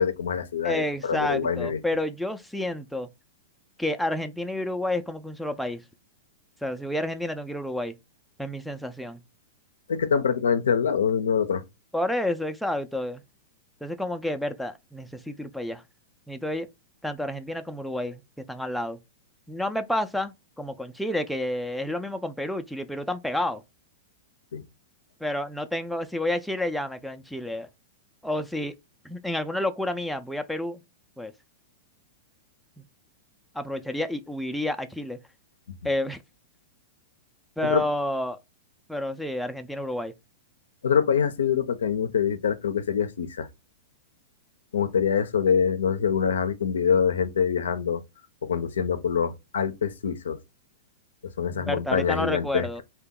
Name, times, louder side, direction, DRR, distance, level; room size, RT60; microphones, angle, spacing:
voice 1, 0.0-1.8 9.9-11.6 24.5-24.6 35.7-35.8 37.6-37.8 40.8-43.5 44.7-48.0 48.4-50.4 51.2-52.8, left 7 dB, 85° left, 0.4 m, -25 dB
voice 2, 0.6-3.1 3.8-5.8 6.6-8.0 8.4-9.2 11.9-13.2 13.8-15.8 16.3-16.7 17.0-19.0 19.5-23.6 25.2-27.7 28.2-28.7 29.0-30.8 31.2-31.3 33.5-35.2 35.8-36.2 37.6-38.4 38.9-40.1 51.5-52.8, left 1 dB, ahead, 0.3 m, -30 dB
2.7 x 2.2 x 3.6 m
hypercardioid pair, 120°, 0 cm